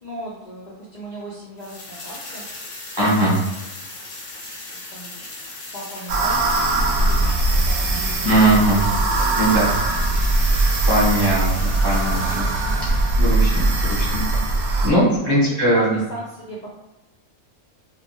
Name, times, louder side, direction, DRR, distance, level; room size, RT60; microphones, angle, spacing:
voice 1, 0.0-2.4 4.7-5.2 5.7-6.6 6.9-8.4 8.6-9.3 15.0-15.4 15.7-16.7, equal, 85° left, -8 dB, 0.3 m, -36 dB
sound 1, 1.6-12.4, left 2 dB, 55° left, 0.6 m, -37 dB
voice 2, 3.0-3.4 8.2-8.8 9.4-9.7 10.9-12.5 13.2-14.2 14.8-16.0, right 1 dB, 25° right, -8 dB, 0.6 m, -19 dB
sound 2, 6.1-14.9, right 2 dB, 70° right, 0.9 m, -20 dB
2.6 x 2.1 x 2.9 m, 0.99 s
omnidirectional pair, 1.5 m